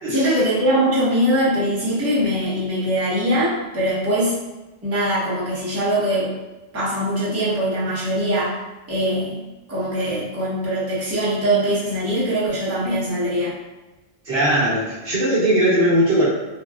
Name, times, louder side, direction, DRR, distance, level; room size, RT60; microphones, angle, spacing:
voice 1, 0.1-4.3 4.8-6.3 6.7-8.6 8.9-9.4 9.7-13.5, equal, 15° right, -10 dB, 0.8 m, -22 dB
voice 2, 14.2-16.3, right 1 dB, 60° right, -8 dB, 1.0 m, -19 dB
3.4 x 2.2 x 2.3 m, 1.1 s
omnidirectional pair, 1.2 m